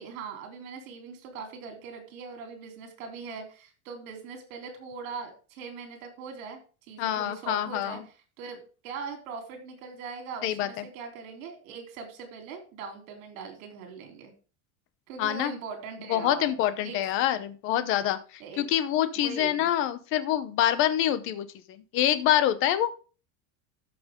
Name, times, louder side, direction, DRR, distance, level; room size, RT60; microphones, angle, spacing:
voice 1, 0.0-6.6 6.9-8.0 8.4-14.3 15.1-16.5 16.8-17.0 18.4-18.6 19.2-19.7, right 5 dB, 70° right, 4 dB, 3.9 m, -41 dB
voice 2, 7.0-8.0 10.4-10.9 15.2-15.5 16.1-22.9, left 11 dB, 30° left, 13 dB, 0.7 m, -26 dB
13.5 x 6.0 x 3.7 m, 0.35 s
supercardioid pair, 180°, 41 cm